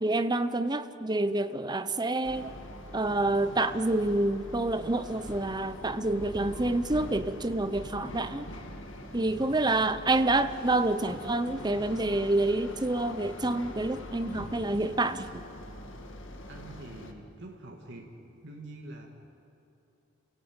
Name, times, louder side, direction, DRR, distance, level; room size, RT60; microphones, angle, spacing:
voice 1, 0.0-2.5 2.9-8.5 9.1-15.4, right 2 dB, 20° right, 11 dB, 0.8 m, -28 dB
sound 1, 2.2-17.1, left 1 dB, 70° left, 2.2 m, -43 dB
voice 2, 9.4-9.8 16.5-18.1 18.4-19.1, right 1 dB, 60° right, 0 dB, 2.4 m, -45 dB
29.5 x 17.5 x 8.9 m, 2.8 s
head